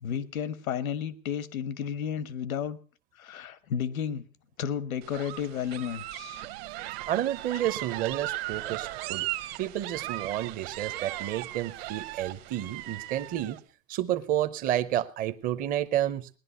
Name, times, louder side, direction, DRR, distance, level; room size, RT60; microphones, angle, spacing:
voice 1, 0.0-2.8 3.2-4.3 4.6-6.5 7.5-7.7, left 8 dB, 85° left, 17 dB, 1.2 m, -32 dB
sound 1, 5.0-13.6, right 17 dB, 45° right, 1.1 m, -37 dB
voice 2, 7.1-9.3 9.6-13.6 13.9-16.3, right 12 dB, 20° right, 10 dB, 0.7 m, -30 dB
19.0 x 11.0 x 5.6 m, 0.39 s
hypercardioid pair, 145°, 41 cm